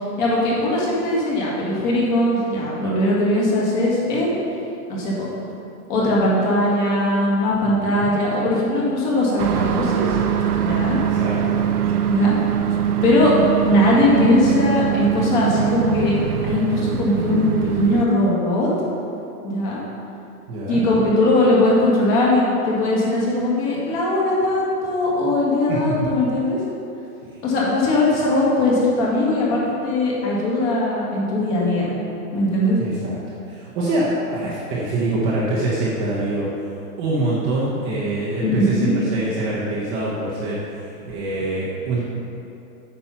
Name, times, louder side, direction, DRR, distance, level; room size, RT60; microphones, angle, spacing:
voice 1, 0.2-4.4 4.9-5.3 5.9-10.2 10.6-11.0 12.1-12.4 13.0-13.3 13.6-16.2 16.4-18.7 19.4-19.8 20.7-26.6 27.4-31.9 32.3-32.8 38.4-38.9, left 1 dB, 30° left, -5 dB, 1.9 m, -20 dB
voice 2, 7.6-8.1 11.0-11.6 20.5-20.9 25.7-25.9 32.8-33.2 33.5-36.5 37.0-40.6 41.0-42.0, right 2 dB, 20° right, -7 dB, 0.8 m, -24 dB
sound 1, 9.4-18.1, right 9 dB, 70° right, 0.8 m, -22 dB
8.8 x 5.5 x 5.6 m, 2.8 s
supercardioid pair, 170°, 47 cm